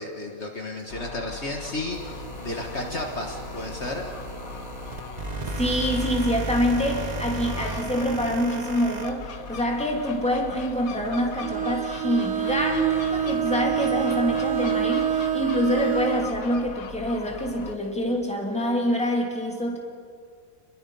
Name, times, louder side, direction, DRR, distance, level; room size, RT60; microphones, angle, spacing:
voice 1, 0.0-4.1, left 2 dB, 50° left, 1 dB, 1.9 m, -33 dB
Gull seagull, 0.9-17.8, left 5 dB, 85° left, 1.5 m, -40 dB
sound 1, 1.9-16.0 16.4-16.5 17.1-18.3, right 2 dB, 30° right, 1.4 m, -36 dB
voice 2, 5.5-19.8, equal, 5° left, 0 dB, 2.8 m, -26 dB
Bowed string instrument, 11.4-16.4, right 9 dB, 60° right, 1.2 m, -26 dB
29.0 x 21.5 x 5.5 m, 2.2 s
omnidirectional pair, 1.4 m